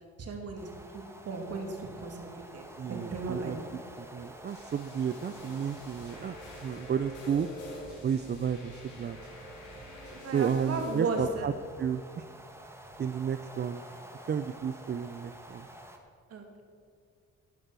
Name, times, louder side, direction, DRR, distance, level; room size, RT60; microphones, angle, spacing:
voice 1, 0.2-2.6 2.9-3.5 10.1-11.5 16.3-16.4, right 4 dB, 55° right, 3 dB, 2.6 m, -35 dB
sound 1, 0.6-16.0, right 1 dB, 10° right, 1.7 m, -50 dB
voice 2, 2.8-3.6 4.0-6.4 6.6-7.5 8.0-9.2 10.3-11.5 11.8-12.3 13.0-13.9 14.3-15.7, right 7 dB, 35° right, 10 dB, 0.5 m, -32 dB
sound 2, 4.5-11.3, left 1 dB, 80° left, 4.0 m, -46 dB
sound 3, 5.7-11.0, right 2 dB, 70° right, 3.4 m, -54 dB
11.5 x 11.0 x 6.1 m, 2.2 s
cardioid pair, 90°, 30 cm